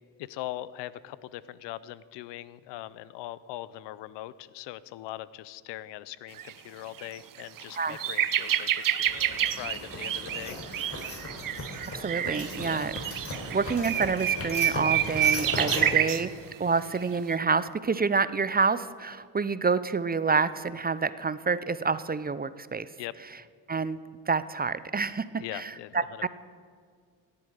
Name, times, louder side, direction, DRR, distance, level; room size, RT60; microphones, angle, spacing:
voice 1, 0.2-9.1 9.4-11.0 12.6-12.9 15.7-15.9 23.0-23.1 25.4-26.3, left 15 dB, 85° left, 18 dB, 0.6 m, -41 dB
sound 1, 6.4-6.5 7.0-7.1 7.4-16.2 17.0-17.2, right 10 dB, 55° right, 0.8 m, -29 dB
sound 2, 9.0-15.9, left 2 dB, 35° left, 3.7 m, -37 dB
voice 2, 11.9-12.9 13.5-16.3 16.6-22.9 23.7-24.0 24.3-26.3, right 4 dB, 25° right, 15 dB, 0.5 m, -28 dB
17.0 x 8.6 x 6.5 m, 2.1 s
supercardioid pair, 60°, 41 cm